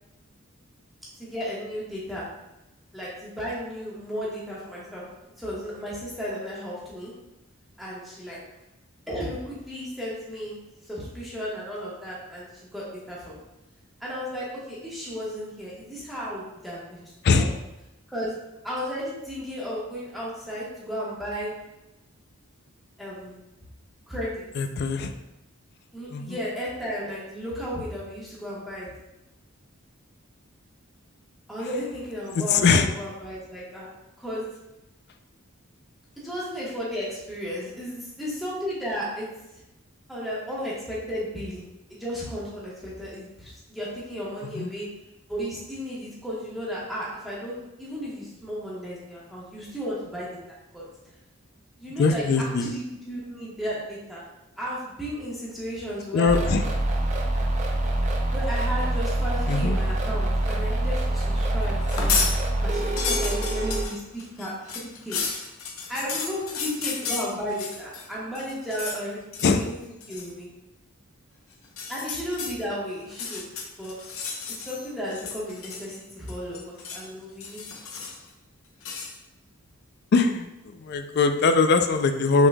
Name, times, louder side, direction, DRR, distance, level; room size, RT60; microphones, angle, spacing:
voice 1, 1.2-2.3 2.9-5.0 5.4-7.1 7.8-8.4 9.1-10.6 10.8-13.4 14.0-17.5 18.1-18.3 18.6-21.5 23.0-23.4 24.1-24.4 25.9-28.9 31.5-33.9 34.2-34.5 36.2-39.6 40.1-41.6 41.9-44.9 45.3-50.4 50.7-51.1 51.8-54.2 54.6-56.3 58.3-62.2 62.6-65.2 65.9-69.8 70.1-70.5 71.9-73.5 73.8-74.0 74.5-77.6, equal, ahead, -8 dB, 1.1 m, -34 dB
voice 2, 24.6-25.1 26.1-26.4 32.3-32.9 44.5-44.7 52.0-52.7 56.1-56.6 59.5-59.8 69.4-69.6 80.1-82.5, left 4 dB, 50° left, 8 dB, 0.3 m, -22 dB
sound 1, 56.3-63.8, right 1 dB, 35° right, 0.4 m, -25 dB
sound 2, 61.8-62.3 62.7-68.1 68.3-69.0 69.3-69.6 70.0-70.3 71.6-72.5 73.1-74.8 75.1-76.0 76.3-77.1 77.4-78.3 78.8-79.1, left 5 dB, 70° left, 0.7 m, -32 dB
6.0 x 3.7 x 2.2 m, 0.95 s
head